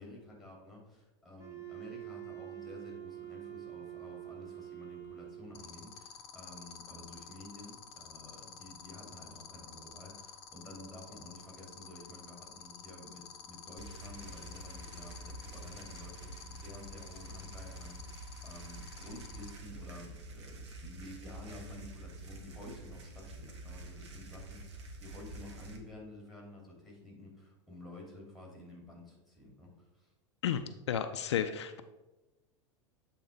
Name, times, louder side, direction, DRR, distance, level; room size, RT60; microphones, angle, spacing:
voice 1, 0.0-30.1, left 2 dB, ahead, -1 dB, 2.6 m, -51 dB
Wind instrument woodwind instrument, 1.4-5.7, right 14 dB, 20° right, 1.1 m, -46 dB
sound 1, 5.5-19.5, left 8 dB, 40° left, 0.7 m, -49 dB
sound 2, 13.8-25.8, right 2 dB, 65° right, 1.2 m, -48 dB
voice 2, 30.4-31.8, left 9 dB, 65° left, 9 dB, 0.4 m, -33 dB
8.0 x 3.8 x 4.5 m, 1.1 s
figure-of-eight pair, 85°, 15 cm